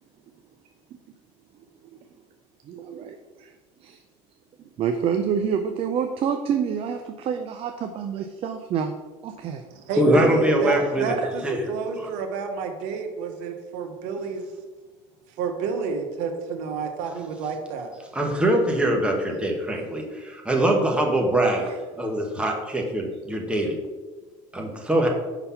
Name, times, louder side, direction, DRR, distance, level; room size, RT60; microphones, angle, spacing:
voice 1, 2.7-3.5 3.8-4.0 4.8-8.9 9.2-9.6 10.1-10.4 11.1-11.3 21.6-21.7, right 7 dB, 50° right, 6 dB, 0.5 m, -28 dB
voice 2, 9.4-11.4 11.7-14.4 15.4-17.9, right 5 dB, 80° right, 5 dB, 0.9 m, -30 dB
voice 3, 10.0-11.1 11.4-11.6 12.0-12.1 18.1-21.6 21.9-23.8 24.5-25.1, right 1 dB, 10° right, 1 dB, 1.3 m, -23 dB
5.5 x 4.0 x 5.7 m, 1.3 s
supercardioid pair, 105°, 13 cm